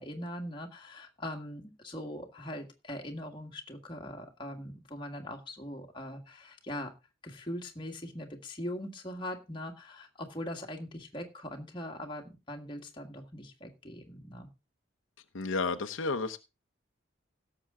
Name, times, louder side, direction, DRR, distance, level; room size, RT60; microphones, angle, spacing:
voice 1, 0.0-6.9 7.2-14.5, left 1 dB, 25° left, 1.7 m, -41 dB
voice 2, 15.3-16.4, left 3 dB, 90° left, 0.9 m, -31 dB
17.0 x 7.0 x 3.7 m
head